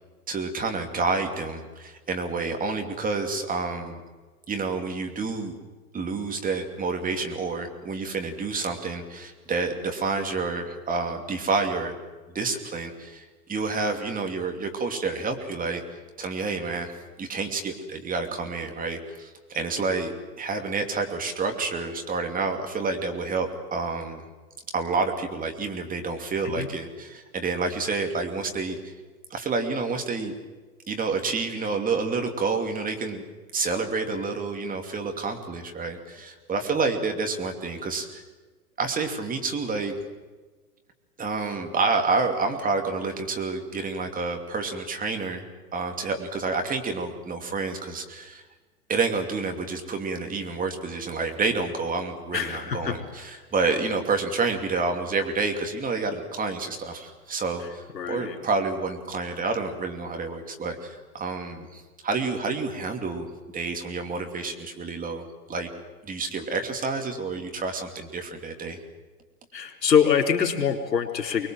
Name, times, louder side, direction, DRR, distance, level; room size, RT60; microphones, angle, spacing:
voice 1, 0.3-4.0 4.5-5.6 5.9-11.9 12.3-15.8 16.2-24.2 24.7-28.9 29.3-30.3 30.9-33.2 33.5-38.2 38.8-39.9 41.2-48.4 48.9-63.3 63.5-65.2 65.5-65.7 66.0-68.8, right 4 dB, 15° right, 4 dB, 2.7 m, -29 dB
voice 2, 52.3-53.0 57.9-58.4 69.5-71.5, left 7 dB, 85° left, 3 dB, 4.1 m, -24 dB
25.0 x 21.5 x 7.7 m, 1.3 s
hypercardioid pair, 115°, 49 cm